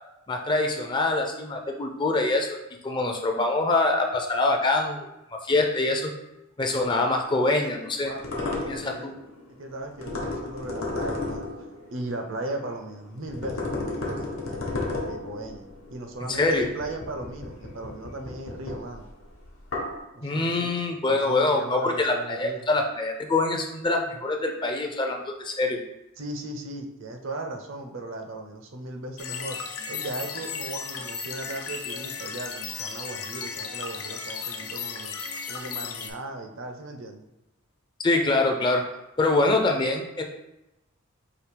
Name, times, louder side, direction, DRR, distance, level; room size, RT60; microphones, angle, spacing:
voice 1, 0.3-6.1 6.6-8.1 8.7-9.1 16.2-16.7 20.2-25.8 38.0-38.9 39.2-40.2, left 2 dB, 20° left, 3 dB, 0.4 m, -25 dB
sound 1, 7.2-12.8 13.2-20.0, left 2 dB, 70° left, 1.0 m, -34 dB
voice 2, 8.0-9.1 9.6-14.7 15.1-19.0 20.1-20.7 21.1-22.6 26.2-29.6 29.9-35.2 35.5-37.2, right 2 dB, 65° right, 4 dB, 0.6 m, -37 dB
sound 2, 29.2-36.1, left 6 dB, 85° left, 0.5 m, -35 dB
4.8 x 2.7 x 3.3 m, 0.94 s
head